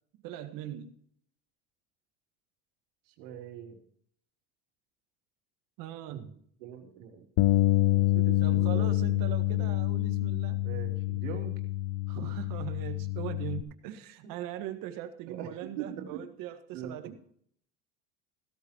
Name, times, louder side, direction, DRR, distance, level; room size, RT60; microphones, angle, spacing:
voice 1, 0.2-1.0 5.8-6.4 8.4-10.6 12.1-17.1, right 12 dB, 65° right, 8 dB, 1.7 m, -40 dB
voice 2, 3.1-3.8 6.1-6.3 6.6-7.3 7.9-8.9 10.6-11.6 13.9-14.3 15.3-16.2 16.7-17.1, right 9 dB, 90° right, 2 dB, 3.0 m, -42 dB
Bass guitar, 7.4-13.6, left 16 dB, 70° left, 0.7 m, -27 dB
16.5 x 13.0 x 3.0 m, 0.64 s
supercardioid pair, 110°, 36 cm